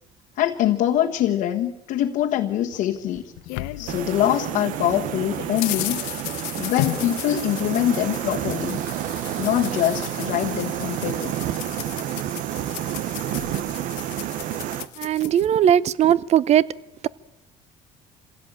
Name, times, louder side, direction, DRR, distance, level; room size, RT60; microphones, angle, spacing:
voice 1, 0.4-3.2 3.8-6.2 6.5-8.8 9.4-11.3, left 12 dB, 70° left, 0 dB, 1.5 m, -24 dB
sound 1, 2.7-4.6 4.9-15.5, left 18 dB, 90° left, 1.0 m, -35 dB
sound 2, 3.8-14.9, right 12 dB, 70° right, 1.0 m, -30 dB
voice 2, 15.0-16.6, right 10 dB, 50° right, 21 dB, 0.8 m, -18 dB
26.5 x 16.5 x 8.9 m, 0.97 s
supercardioid pair, 90°, 14 cm